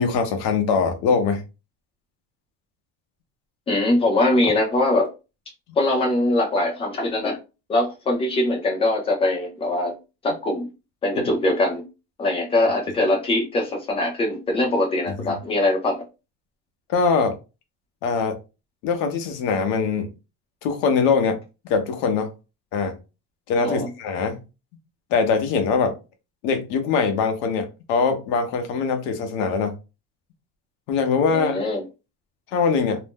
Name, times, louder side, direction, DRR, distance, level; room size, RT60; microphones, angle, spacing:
voice 1, 0.0-1.4 15.2-15.3 16.9-17.3 18.0-18.3 18.8-20.1 20.6-21.4 21.7-22.3 22.7-22.9 23.5-24.4 25.1-25.9 26.4-29.7 30.9-31.6 32.5-33.0, left 5 dB, 65° left, 6 dB, 0.8 m, -22 dB
voice 2, 3.7-5.1 5.8-7.4 7.7-9.9 10.2-10.7 11.0-11.8 12.2-16.0 23.6-23.9 31.3-31.8, left 2 dB, 15° left, 0 dB, 0.6 m, -22 dB
2.6 x 2.1 x 3.4 m, 0.29 s
cardioid pair, 175°, 36 cm